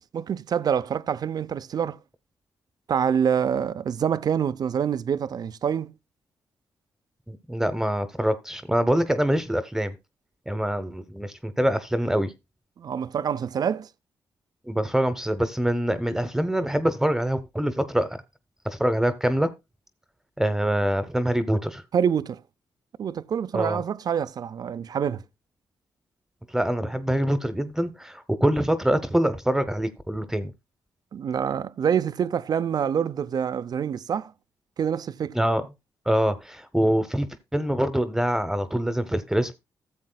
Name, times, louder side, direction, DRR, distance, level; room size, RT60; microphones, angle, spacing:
voice 1, 0.1-2.0 2.9-5.9 12.8-13.9 21.9-22.4 23.0-25.2 31.1-34.3 34.8-35.3, right 8 dB, 55° right, 0.5 m, -26 dB
voice 2, 7.3-9.9 10.5-12.3 14.6-18.1 18.6-19.5 20.4-21.8 23.5-23.8 26.5-30.5 35.3-35.6 36.1-37.3 37.5-39.5, right 1 dB, 5° right, 0.9 m, -24 dB
14.0 x 7.5 x 2.2 m
cardioid pair, 70°, 8 cm